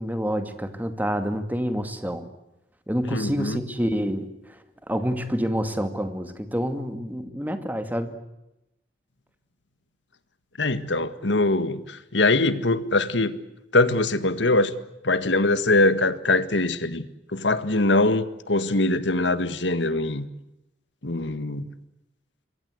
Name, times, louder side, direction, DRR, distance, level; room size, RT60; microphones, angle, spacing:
voice 1, 0.0-2.3 2.9-4.6 4.9-8.1, equal, 10° right, 2.3 m, -28 dB
voice 2, 3.1-3.6 10.6-13.4 13.7-14.7 15.0-17.0 17.3-20.3 21.0-21.6, left 2 dB, 85° left, 1.8 m, -22 dB
26.5 x 23.0 x 8.0 m
head